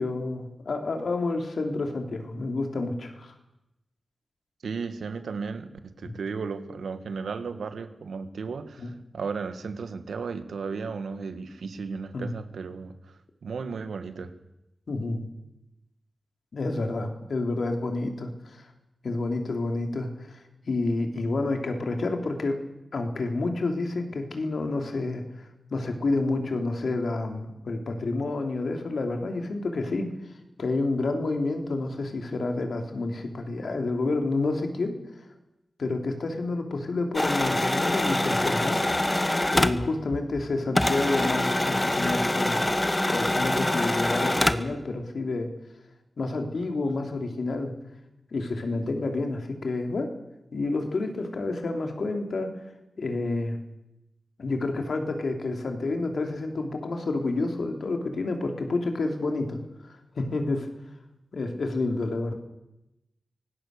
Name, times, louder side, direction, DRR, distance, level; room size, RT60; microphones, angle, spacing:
voice 1, 0.0-3.3 6.0-6.1 8.8-8.9 12.1-12.3 14.9-15.2 16.5-18.7 19.0-22.6 22.9-30.1 30.6-35.0 35.8-38.8 39.5-42.6 43.1-45.5 46.2-47.7 48.3-50.1 50.5-52.6 53.0-53.6 54.4-59.6 60.1-60.7 61.3-62.3, left 2 dB, 75° left, 4 dB, 3.3 m, -29 dB
voice 2, 4.6-13.1 13.4-14.3, right 5 dB, 90° right, 9 dB, 1.6 m, -35 dB
sound 1, 37.1-40.5 40.7-44.7, left 1 dB, 20° left, 1.3 m, -25 dB
24.5 x 17.5 x 6.7 m, 0.91 s
cardioid pair, 45°, 0 cm